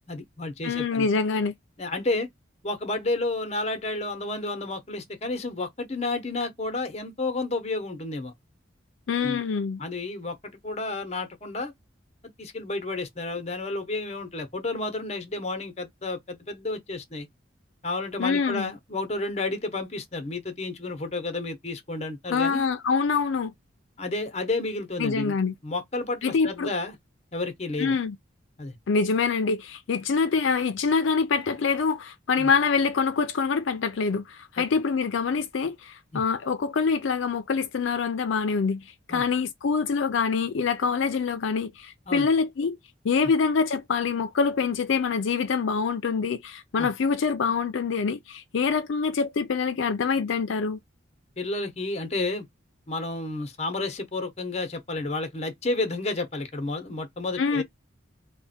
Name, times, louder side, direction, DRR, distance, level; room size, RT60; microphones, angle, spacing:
voice 1, 0.1-1.1 1.8-2.3 2.6-8.3 9.2-9.4 9.8-11.7 12.4-17.3 17.8-22.6 24.0-25.4 25.6-27.0 27.3-28.0 28.6-28.8 32.4-32.5 34.6-34.7 36.1-36.2 39.1-39.2 42.1-42.3 43.2-43.3 46.8-46.9 51.4-52.4 52.9-57.6, left 2 dB, 35° left, 0.8 m, -31 dB
voice 2, 0.6-1.5 9.1-9.8 18.2-18.7 22.3-23.5 25.0-25.5 26.2-26.7 27.8-28.2 28.9-42.8 43.0-50.8 57.4-57.6, left 5 dB, 75° left, 0.4 m, -25 dB
3.4 x 2.2 x 4.1 m
head